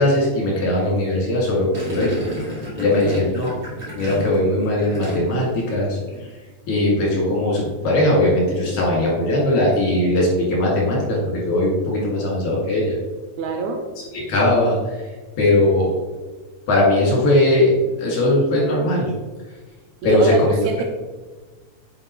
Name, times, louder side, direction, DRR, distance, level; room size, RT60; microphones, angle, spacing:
voice 1, 0.0-2.3 2.8-3.6 4.0-6.3 6.7-13.0 14.1-15.0 15.4-15.9 16.7-17.7 18.0-19.1 20.0-20.6, left 1 dB, 80° left, -4 dB, 3.7 m, -19 dB
Gurgling, 1.7-5.5 5.8-6.2, right 1 dB, 20° right, 1.8 m, -32 dB
voice 2, 13.4-13.8 20.0-20.8, right 4 dB, 85° right, 3 dB, 2.0 m, -23 dB
9.4 x 4.9 x 3.1 m, 1.3 s
omnidirectional pair, 3.3 m